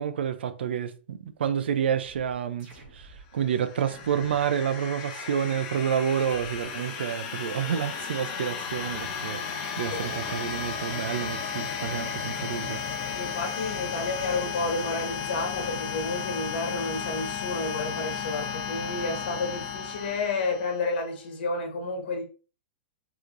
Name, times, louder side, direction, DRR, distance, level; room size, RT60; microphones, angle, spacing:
voice 1, 0.0-3.1 3.3-12.8, right 8 dB, 80° right, 0.5 m, -29 dB
sound 1, 2.6-3.3 3.8-4.5 5.0-6.9 7.4-9.3 9.8-10.5, right 2 dB, 35° right, 1.7 m, -48 dB
sound 2, 3.4-21.0, left 6 dB, 50° left, 1.0 m, -34 dB
voice 2, 13.1-22.2, left 3 dB, 70° left, 1.4 m, -31 dB
4.8 x 3.1 x 2.5 m
hypercardioid pair, 145°, 6 cm